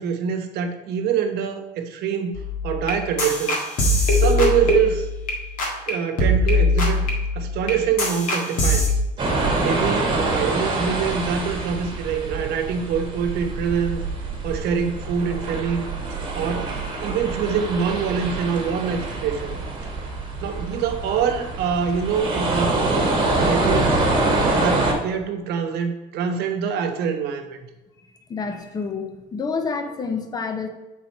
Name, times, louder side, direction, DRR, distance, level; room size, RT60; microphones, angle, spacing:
voice 1, 0.0-3.6 4.1-5.1 5.9-7.1 7.3-9.0 9.6-14.0 14.4-15.9 16.3-16.7 17.0-19.5 20.4-24.0 24.5-27.6, right 7 dB, 65° right, 6 dB, 1.0 m, -25 dB
sound 1, 2.3-5.3 5.6-5.9 6.2-8.9, left 2 dB, 50° left, 1.7 m, -21 dB
sound 2, 9.2-24.9, right 2 dB, 25° right, 1.5 m, -25 dB
voice 2, 28.3-30.7, left 5 dB, 20° left, 6 dB, 0.8 m, -28 dB
7.5 x 4.0 x 4.3 m, 1.1 s
cardioid pair, 140°, 18 cm